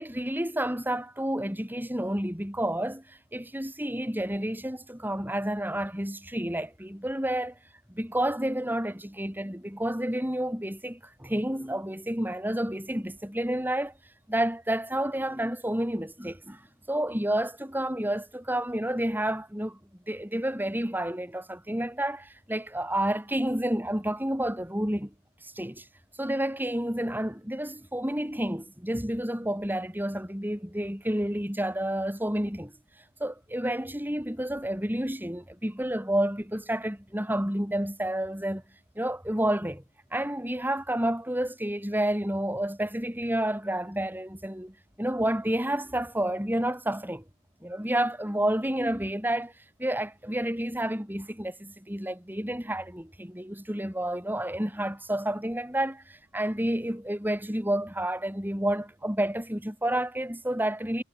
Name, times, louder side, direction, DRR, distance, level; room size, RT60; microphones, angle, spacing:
voice 1, 0.0-7.6 7.9-13.9 14.3-16.6 16.9-19.8 20.1-25.1 25.4-25.9 26.2-32.7 33.2-38.6 39.0-39.8 40.1-47.2 47.6-49.5 49.8-61.0, right 1 dB, 10° right, 7.4 m, -30 dB
head